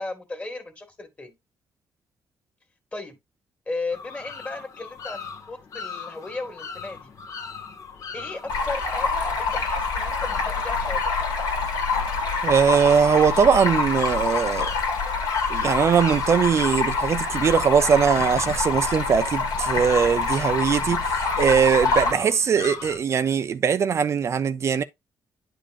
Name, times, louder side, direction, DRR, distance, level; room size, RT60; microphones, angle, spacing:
voice 1, 0.0-1.3 2.9-3.2 3.7-7.1 8.1-11.0, left 3 dB, 25° left, 2.1 m, -35 dB
sound 1, 3.9-23.0, left 5 dB, 50° left, 1.4 m, -39 dB
Stream, 8.5-22.1, left 4 dB, 85° left, 2.5 m, -26 dB
voice 2, 12.4-14.7 15.5-24.8, right 7 dB, 45° right, 0.5 m, -21 dB
9.9 x 5.1 x 2.5 m
cardioid pair, 115°, 7 cm